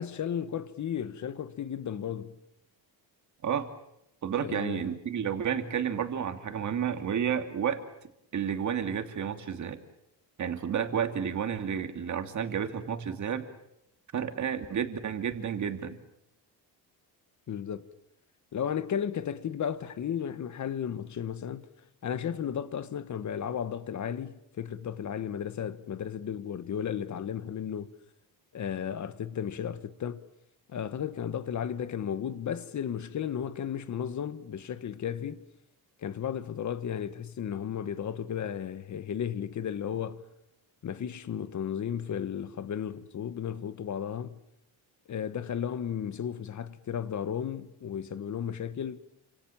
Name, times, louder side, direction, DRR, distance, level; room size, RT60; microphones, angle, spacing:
voice 1, 0.0-2.4 4.4-4.8 17.5-17.9 18.5-21.7 22.0-27.9 28.5-30.2 30.7-35.5 36.0-40.2 40.8-44.4 45.1-49.0, left 8 dB, 45° left, 1.6 m, -34 dB
voice 2, 4.2-7.8 8.3-9.8 10.4-13.5 14.1-16.0, right 8 dB, 45° right, 2.8 m, -31 dB
29.5 x 26.5 x 7.4 m
cardioid pair, 135°, 40 cm